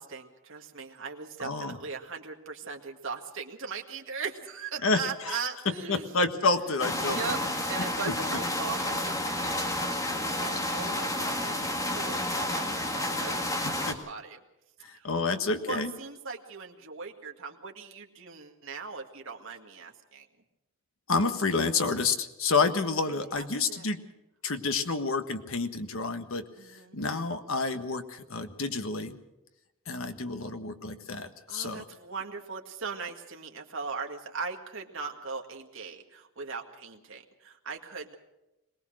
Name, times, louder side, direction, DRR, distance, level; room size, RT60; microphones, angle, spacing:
voice 1, 0.0-6.1 7.1-7.4 7.7-14.4 14.9-15.1 15.7-20.3 22.6-23.9 26.6-27.0 31.5-38.1, right 5 dB, 65° right, 2 dB, 2.0 m, -39 dB
voice 2, 1.4-1.8 4.8-5.4 5.9-7.2 13.9-14.0 14.8-15.9 21.1-24.0 24.4-29.2 29.9-31.8, left 4 dB, 65° left, 8 dB, 1.5 m, -29 dB
sound 1, 6.8-13.9, left 1 dB, 15° left, 1.9 m, -30 dB
22.5 x 19.0 x 6.4 m, 0.96 s
head